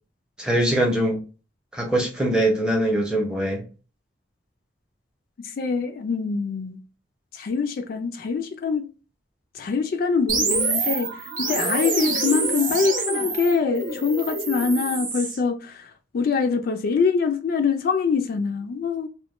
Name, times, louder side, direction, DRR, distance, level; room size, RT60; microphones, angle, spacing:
voice 1, 0.4-1.2 1.7-3.6, right 1 dB, 5° right, 0.6 m, -22 dB
voice 2, 5.4-6.8 7.3-8.9 9.5-19.1, left 5 dB, 50° left, 0.3 m, -24 dB
sound 1, 10.3-15.4, right 3 dB, 40° right, 0.6 m, -26 dB
3.0 x 2.1 x 3.0 m
head